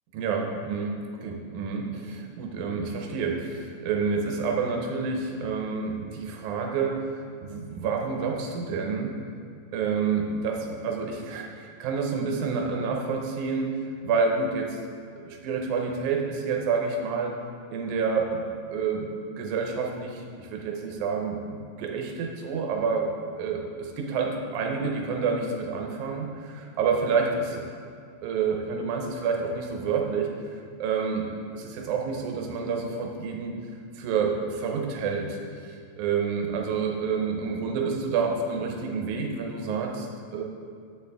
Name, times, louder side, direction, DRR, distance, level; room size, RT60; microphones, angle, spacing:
voice 1, 0.1-0.9 1.2-7.0 7.4-9.1 9.7-13.7 14.0-14.8 15.1-17.3 17.7-20.2 20.5-23.1 23.4-27.6 28.2-30.3 30.8-31.3 31.5-33.6 34.0-40.4, right 5 dB, 85° right, 1 dB, 2.2 m, -28 dB
9.6 x 7.1 x 3.4 m, 2.2 s
omnidirectional pair, 3.4 m